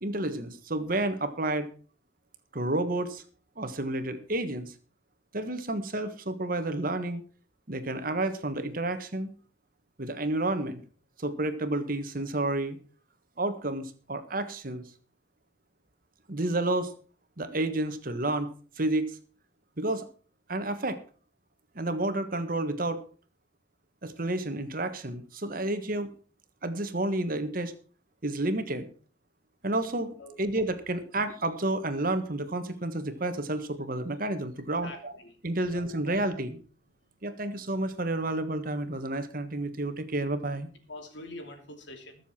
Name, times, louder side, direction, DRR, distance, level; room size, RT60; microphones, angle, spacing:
voice 1, 0.0-1.7 2.5-3.2 3.6-4.7 5.3-7.2 7.7-9.3 10.0-10.8 11.2-12.8 13.4-14.8 16.3-16.9 17.4-18.5 18.8-19.2 19.8-20.0 20.5-21.0 21.7-23.0 24.0-26.1 26.6-27.7 28.2-28.9 29.6-35.1 35.4-36.6 37.2-40.7, right 2 dB, 50° right, 9 dB, 1.5 m, -30 dB
voice 2, 34.8-35.3 35.6-36.2 40.9-42.2, left 1 dB, 75° left, 4 dB, 2.9 m, -44 dB
21.0 x 7.1 x 4.4 m, 0.39 s
head